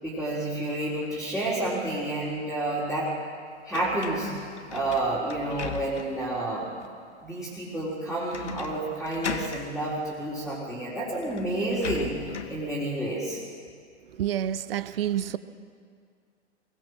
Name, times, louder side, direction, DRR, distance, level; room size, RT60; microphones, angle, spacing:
voice 1, 0.0-3.2 3.6-4.3 4.7-6.7 7.2-12.2 12.5-13.4, right 1 dB, ahead, 3.7 m, -30 dB
sound 1, 3.7-6.3 6.8-6.9 8.3-8.8 9.0-9.7 10.7-10.8 11.1-12.6, left 5 dB, 70° left, 1.7 m, -37 dB
voice 2, 14.2-15.4, right 11 dB, 55° right, 0.9 m, -28 dB
23.0 x 18.5 x 6.3 m
figure-of-eight pair, 105°, 36 cm